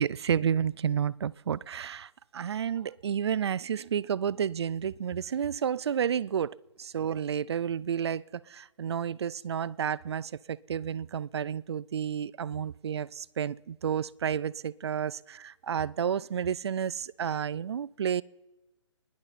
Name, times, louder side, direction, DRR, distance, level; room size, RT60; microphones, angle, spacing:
voice 1, 0.0-18.2, right 8 dB, 55° right, 0.4 m, -31 dB
24.0 x 10.5 x 4.2 m
hypercardioid pair, 160°, 16 cm